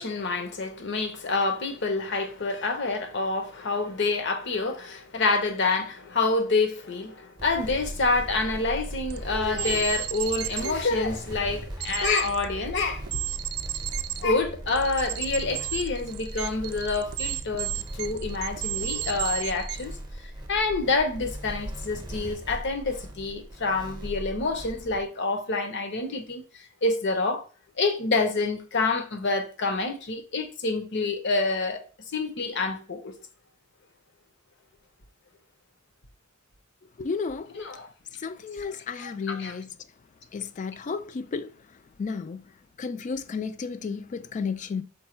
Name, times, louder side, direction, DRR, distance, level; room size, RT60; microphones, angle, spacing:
voice 1, 0.0-13.0 14.2-19.9 20.5-27.4 27.8-31.8 32.1-33.1 37.5-37.9 38.6-39.6, left 3 dB, 60° left, 0.8 m, -27 dB
sound 1, 7.4-25.0, right 1 dB, 20° right, 0.7 m, -38 dB
sound 2, 9.1-9.2 9.5-10.8 11.8-12.4 13.1-14.2 14.7-19.8, right 16 dB, 80° right, 0.4 m, -33 dB
voice 2, 37.0-37.5 38.2-39.7 40.3-41.5 42.0-42.4 42.8-44.8, left 5 dB, 35° left, 0.3 m, -32 dB
5.3 x 2.2 x 4.3 m
head